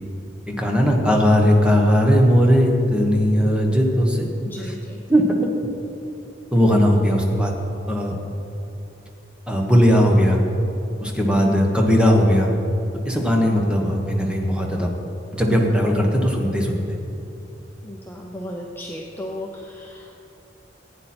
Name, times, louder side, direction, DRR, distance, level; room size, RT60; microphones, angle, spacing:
voice 1, 0.5-4.3 4.6-4.7 5.1-5.3 6.5-7.5 7.9-8.2 9.5-10.4 11.0-12.5 13.0-14.9 15.3-17.0, equal, 5° right, 0 dB, 1.3 m, -18 dB
voice 2, 4.4-5.0 11.4-11.7 17.8-20.2, left 1 dB, 10° left, -1 dB, 0.7 m, -34 dB
15.5 x 9.0 x 4.4 m, 2.9 s
head